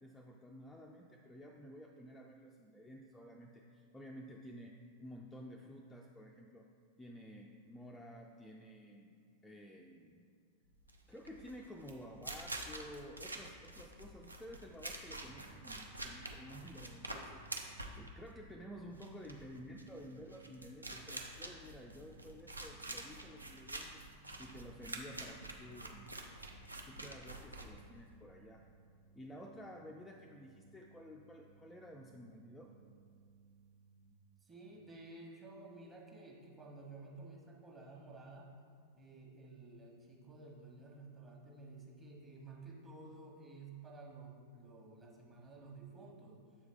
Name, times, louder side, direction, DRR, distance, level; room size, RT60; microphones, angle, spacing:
voice 1, 0.0-6.7 7.0-9.2 9.4-10.3 11.1-24.0 24.4-26.1 26.9-28.6 29.1-32.7, equal, 5° left, 0 dB, 0.4 m, -52 dB
sound 1, 10.8-28.2, right 2 dB, 80° right, 0.5 m, -47 dB
sound 2, 15.2-34.1, right 6 dB, 35° right, 0.8 m, -63 dB
voice 2, 34.4-38.5 39.0-46.4, right 3 dB, 20° right, -2 dB, 1.3 m, -53 dB
7.5 x 4.7 x 3.5 m, 2.2 s
figure-of-eight pair, 90°, 0 cm